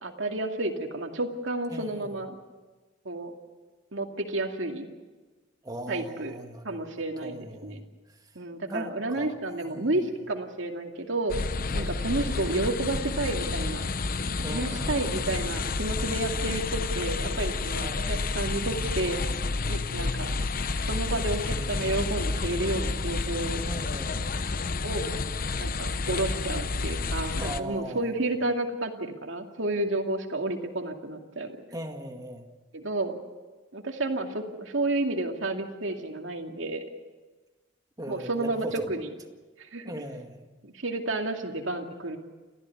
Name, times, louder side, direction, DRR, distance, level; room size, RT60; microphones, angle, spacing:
voice 1, 0.0-2.4 3.0-3.3 3.9-4.9 5.9-6.4 6.6-7.8 8.4-11.3 11.7-13.9 14.5-19.2 19.7-20.3 20.8-23.6 24.8-25.0 25.5-31.6 32.7-33.2 33.7-36.8 38.1-39.1 39.6-39.9 40.6-42.2, right 2 dB, 80° right, 3 dB, 2.5 m, -31 dB
voice 2, 1.7-2.1 5.6-6.8 7.2-7.8 8.7-9.4 9.6-10.0 11.7-12.1 14.4-15.2 17.8-18.1 23.6-24.4 27.4-28.1 31.7-32.5 38.0-38.9 39.8-40.5, right 1 dB, 20° right, 4 dB, 1.9 m, -39 dB
sound 1, 11.3-27.6, left 3 dB, 50° left, 0.8 m, -30 dB
29.5 x 14.0 x 8.4 m, 1.3 s
head